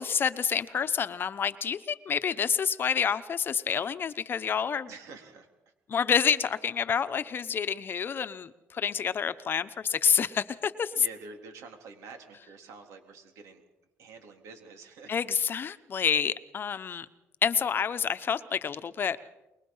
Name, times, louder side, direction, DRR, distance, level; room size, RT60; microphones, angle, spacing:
voice 1, 0.0-4.9 5.9-10.9 15.1-17.1 17.4-19.2, left 7 dB, 45° left, 12 dB, 1.0 m, -28 dB
voice 2, 4.9-5.7 10.9-13.6 14.0-15.1 15.4-15.7, right 4 dB, 80° right, 4 dB, 3.8 m, -48 dB
24.0 x 22.0 x 5.7 m, 0.98 s
cardioid pair, 105°, 5 cm